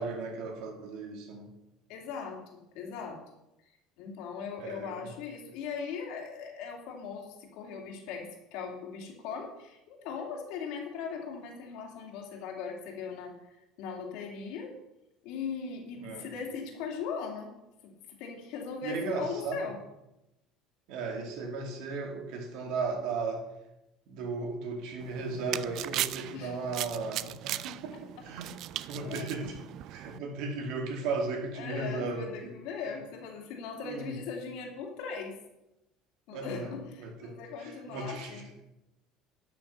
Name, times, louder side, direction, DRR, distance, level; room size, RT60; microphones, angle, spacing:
voice 1, 0.0-1.5 4.6-5.1 16.0-16.3 18.8-19.6 20.9-23.5 24.1-28.0 28.2-28.5 28.9-29.6 29.9-32.5 33.8-34.1 36.3-36.7 37.0-38.3, right 4 dB, 70° right, 3 dB, 2.4 m, -36 dB
voice 2, 1.9-3.2 4.0-13.3 13.8-14.7 15.2-17.5 17.8-19.8 26.3-26.7 29.0-29.3 31.6-35.4 36.3-38.5, left 6 dB, 75° left, 1 dB, 2.6 m, -39 dB
sound 1, 25.0-30.2, right 14 dB, 55° right, 0.3 m, -38 dB
12.0 x 6.4 x 5.4 m, 0.92 s
cardioid pair, 130°, 0 cm